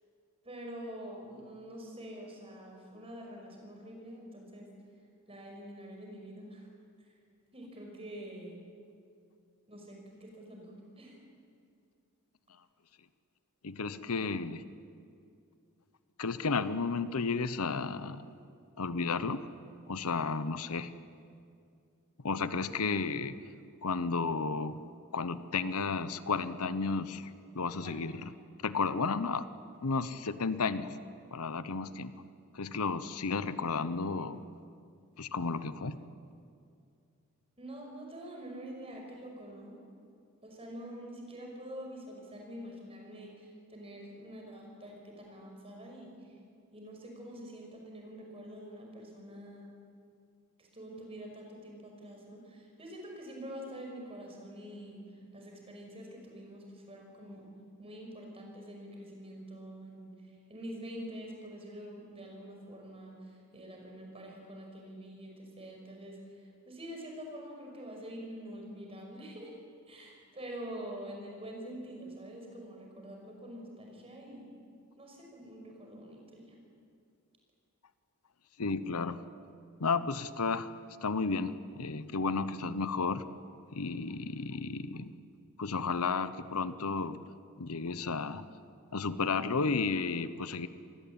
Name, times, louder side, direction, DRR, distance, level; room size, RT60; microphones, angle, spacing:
voice 1, 0.4-4.7 5.3-6.7 7.0-7.1 7.5-8.6 9.7-11.2 27.8-28.0 37.6-39.8 40.4-46.1 46.7-49.7 50.6-55.0 55.3-57.5 57.8-69.6 69.9-74.6 75.0-76.6, equal, 25° right, 1 dB, 5.6 m, -46 dB
voice 2, 13.6-14.6 16.2-18.3 18.8-19.5 19.9-20.9 22.2-23.4 23.8-24.8 25.1-28.3 28.6-29.5 29.8-31.0 31.3-32.1 32.5-34.4 35.2-36.0 78.6-79.2 79.8-80.7 81.0-83.2 83.7-85.1 85.6-87.2 87.6-88.5 88.9-90.7, left 4 dB, 85° left, 14 dB, 0.9 m, -33 dB
26.5 x 19.5 x 8.8 m, 2.4 s
head